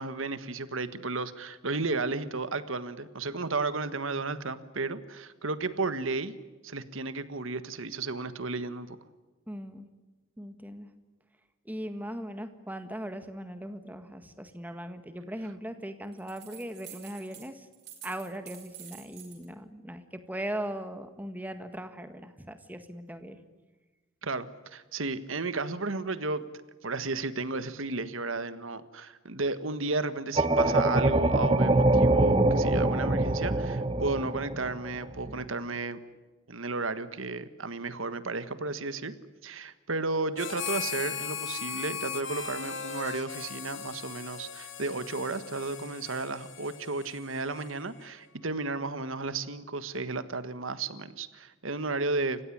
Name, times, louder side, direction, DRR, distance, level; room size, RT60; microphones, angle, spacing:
voice 1, 0.0-6.3 6.6-9.0 24.2-26.4 26.8-36.0 36.5-39.1 39.4-52.4, right 3 dB, 80° right, 12 dB, 1.5 m, -33 dB
voice 2, 9.5-9.9 10.4-10.9 11.6-17.7 18.0-23.4, right 1 dB, 10° right, 8 dB, 1.7 m, -39 dB
sound 1, 16.1-17.5 17.7-19.4, right 10 dB, 50° right, 6.0 m, -48 dB
sound 2, 30.4-35.4, right 2 dB, 25° right, 1.2 m, -24 dB
Harmonica, 40.3-48.1, left 7 dB, 65° left, 2.3 m, -38 dB
29.0 x 16.0 x 10.0 m, 1.2 s
head